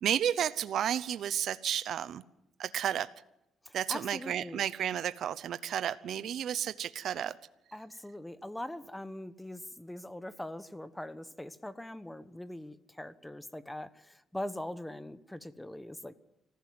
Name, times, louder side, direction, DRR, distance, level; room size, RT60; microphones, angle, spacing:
voice 1, 0.0-2.2 2.6-3.1 3.7-7.4, right 10 dB, 70° right, 14 dB, 0.8 m, -32 dB
voice 2, 3.6-4.6 7.7-16.2, left 1 dB, 10° left, 13 dB, 1.1 m, -42 dB
25.5 x 15.0 x 7.8 m, 0.87 s
cardioid pair, 90°, 0 cm